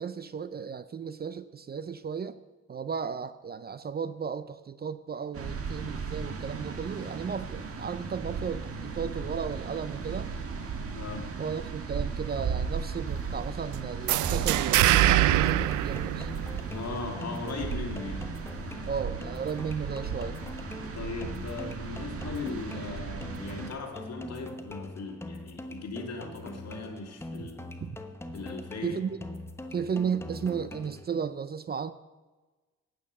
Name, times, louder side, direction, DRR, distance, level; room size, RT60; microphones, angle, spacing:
voice 1, 0.0-2.4 2.7-10.3 11.4-16.3 18.9-20.4 27.8-28.0 28.8-29.2 29.7-31.9, right 6 dB, 30° right, 13 dB, 0.5 m, -34 dB
sound 1, 5.3-23.7, right 5 dB, 50° right, 1.7 m, -35 dB
voice 2, 10.9-11.3 16.7-18.4 20.9-27.7 28.3-29.0, left 3 dB, 60° left, 2 dB, 2.5 m, -38 dB
sound 2, 14.1-16.8, right 15 dB, 80° right, 0.5 m, -24 dB
sound 3, 15.2-31.2, left 2 dB, 10° left, 1.0 m, -43 dB
10.0 x 8.9 x 6.6 m, 1.2 s
cardioid pair, 90°, 30 cm